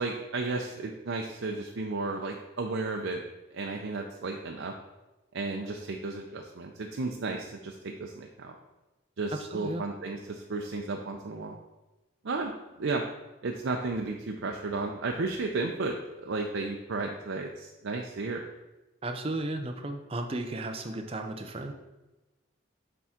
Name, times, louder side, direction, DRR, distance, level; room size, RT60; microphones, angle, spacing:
voice 1, 0.0-3.2 3.5-4.7 5.3-8.5 9.2-11.6 12.2-12.5 12.8-13.0 13.4-18.4, right 3 dB, 70° right, 2 dB, 0.6 m, -33 dB
voice 2, 9.3-9.8 19.0-21.7, right 2 dB, 30° right, 5 dB, 0.6 m, -34 dB
6.8 x 3.7 x 5.8 m, 1.1 s
head